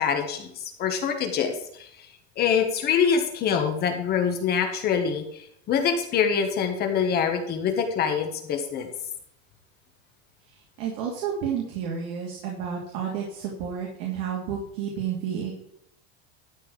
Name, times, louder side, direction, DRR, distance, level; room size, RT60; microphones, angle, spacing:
voice 1, 0.0-1.9 2.4-5.4 5.7-8.9, left 7 dB, 30° left, 5 dB, 1.4 m, -25 dB
voice 2, 10.5-15.5, right 7 dB, 60° right, -2 dB, 3.0 m, -31 dB
12.5 x 4.6 x 7.3 m, 0.72 s
supercardioid pair, 165°, 31 cm